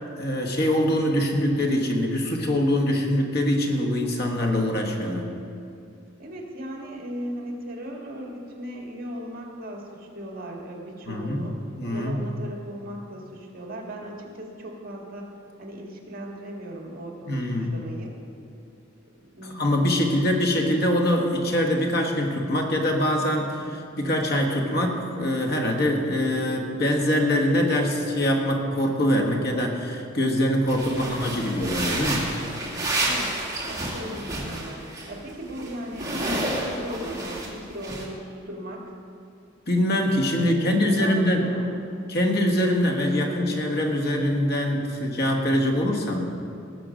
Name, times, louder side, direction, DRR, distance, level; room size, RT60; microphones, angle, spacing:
voice 1, 0.2-5.3 11.1-11.5 11.7-12.2 17.3-17.7 19.4-32.3 39.7-41.5 42.1-46.3, left 1 dB, 50° left, 2 dB, 1.5 m, -23 dB
voice 2, 6.2-11.6 11.9-15.3 15.6-18.1 19.2-19.7 30.9-31.7 33.0-33.3 33.5-38.9 40.6-41.8, equal, 45° right, 0 dB, 1.9 m, -37 dB
sound 1, 30.7-35.1 35.4-37.5 37.8-38.0, right 1 dB, 20° right, 2.2 m, -30 dB
19.0 x 6.9 x 5.1 m, 2.5 s
head